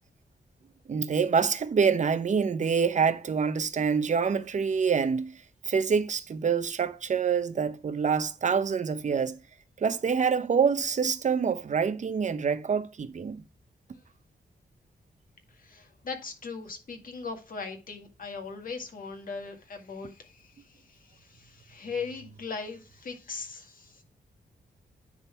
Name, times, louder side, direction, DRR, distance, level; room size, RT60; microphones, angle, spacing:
voice 1, 0.9-5.4 5.6-9.4 9.8-13.4, right 6 dB, 45° right, 0.8 m, -26 dB
voice 2, 15.5-24.0, left 4 dB, 55° left, 2.0 m, -39 dB
9.9 x 4.0 x 4.4 m
wide cardioid pair, 125°, 17 cm